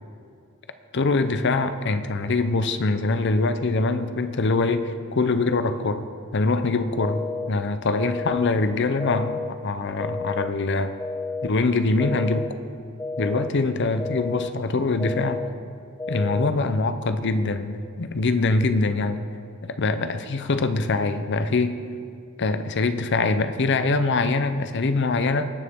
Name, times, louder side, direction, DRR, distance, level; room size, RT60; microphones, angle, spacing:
voice 1, 0.9-6.1 6.3-10.9 11.4-12.5 13.2-15.4 16.1-19.2 19.8-21.8 22.4-25.5, left 3 dB, 60° left, 10 dB, 0.6 m, -23 dB
sound 1, 7.0-7.5 8.0-8.5 9.0-9.5 10.0-10.5 11.0-11.5 12.0-12.5 13.0-13.5 14.0-14.5 15.0-15.5 16.0-16.5, left 4 dB, 10° left, 0.3 m, -31 dB
20.5 x 7.0 x 3.6 m, 2.4 s
head